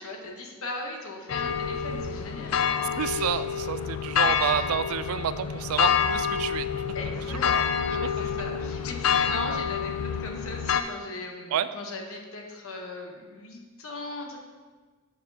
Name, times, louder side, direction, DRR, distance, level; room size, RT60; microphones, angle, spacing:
voice 1, 0.0-2.9 6.9-14.4, left 2 dB, 70° left, 2 dB, 1.1 m, -38 dB
sound 1, 1.3-10.8, left 7 dB, 90° left, 0.4 m, -27 dB
voice 2, 3.0-6.7 7.3-7.7 11.5-11.7, right 9 dB, 75° right, 13 dB, 0.3 m, -29 dB
7.6 x 6.8 x 2.8 m, 1.4 s
head